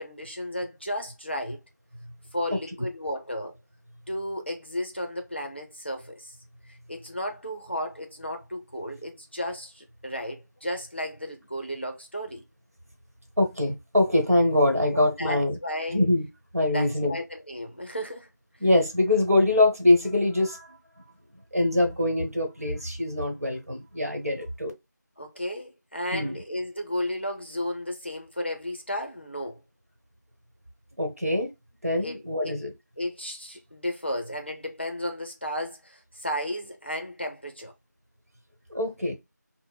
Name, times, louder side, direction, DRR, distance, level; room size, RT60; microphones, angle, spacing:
voice 1, 0.0-1.6 2.3-3.5 4.1-6.3 6.7-12.4 14.9-16.0 16.7-18.3 25.2-29.6 32.0-32.6 33.0-37.7, left 1 dB, 35° left, 0.6 m, -33 dB
voice 2, 13.4-15.6 15.9-16.3 16.5-17.2 18.6-20.8 21.5-24.7 26.1-26.4 31.0-31.5 31.8-32.7 38.7-39.2, left 1 dB, 55° right, 1.1 m, -23 dB
4.8 x 2.0 x 2.2 m
figure-of-eight pair, 175°, 10 cm